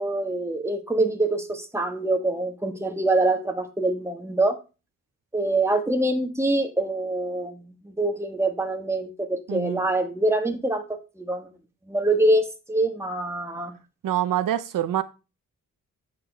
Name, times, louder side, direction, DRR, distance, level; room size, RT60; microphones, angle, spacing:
voice 1, 0.0-4.6 5.3-11.5 11.9-13.7, right 2 dB, 10° right, 1.4 m, -25 dB
voice 2, 9.5-9.9 14.0-15.0, right 12 dB, 80° right, 0.7 m, -25 dB
8.6 x 6.8 x 3.3 m
wide cardioid pair, 135°, 32 cm